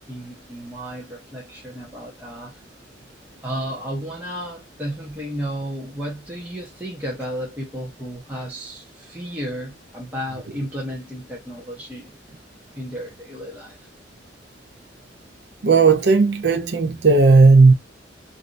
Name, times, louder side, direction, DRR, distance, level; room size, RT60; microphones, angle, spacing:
voice 1, 0.0-2.6 3.4-12.1 12.7-13.9, equal, 10° right, 0.8 m, -33 dB
voice 2, 15.6-17.7, right 4 dB, 60° right, 0.5 m, -14 dB
3.2 x 2.6 x 2.5 m
head